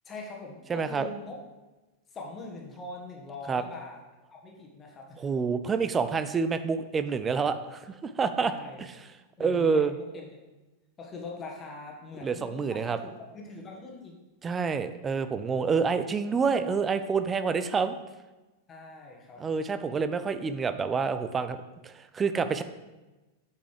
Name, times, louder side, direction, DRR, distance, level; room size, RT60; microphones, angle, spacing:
voice 1, 0.0-1.4 2.1-4.0 4.3-5.2 5.6-5.7 8.4-8.8 9.4-9.8 10.1-10.3 11.0-14.1 18.7-19.7, left 3 dB, 25° left, 0 dB, 1.7 m, -42 dB
voice 2, 0.7-1.1 3.5-3.6 5.2-8.5 8.8-9.0 9.4-9.9 12.2-13.0 14.4-18.0 19.4-22.6, right 5 dB, 20° right, 11 dB, 0.6 m, -28 dB
8.4 x 5.8 x 4.9 m, 1.1 s
figure-of-eight pair, 90°, 0 cm